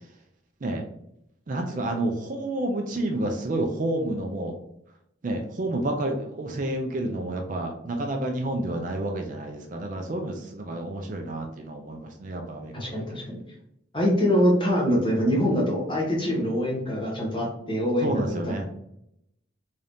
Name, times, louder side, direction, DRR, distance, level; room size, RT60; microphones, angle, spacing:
voice 1, 1.5-4.6 5.2-13.0 18.0-18.7, right 1 dB, 40° right, 3 dB, 0.4 m, -29 dB
voice 2, 12.7-13.4 13.9-18.4, equal, 25° left, -3 dB, 1.0 m, -24 dB
3.7 x 2.7 x 3.4 m, 0.77 s
head